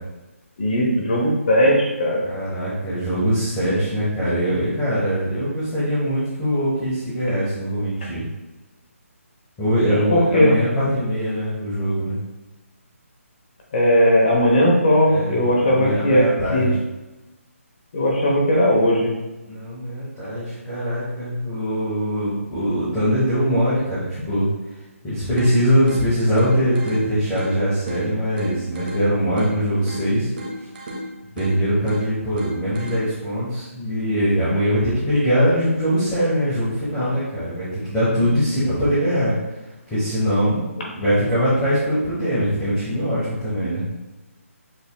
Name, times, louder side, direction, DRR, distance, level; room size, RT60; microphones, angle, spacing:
voice 1, 0.6-2.2 9.8-10.5 13.7-16.7 17.9-19.1, equal, 40° left, -2 dB, 1.0 m, -18 dB
voice 2, 2.2-8.2 9.6-12.2 15.1-16.8 19.5-24.5 25.0-30.3 31.3-39.3 39.9-40.6 40.9-43.8, equal, 10° left, -12 dB, 1.1 m, -22 dB
sound 1, 25.4-33.4, equal, 35° right, 1.0 m, -35 dB
6.8 x 3.4 x 2.3 m, 1.1 s
hypercardioid pair, 165°, 8 cm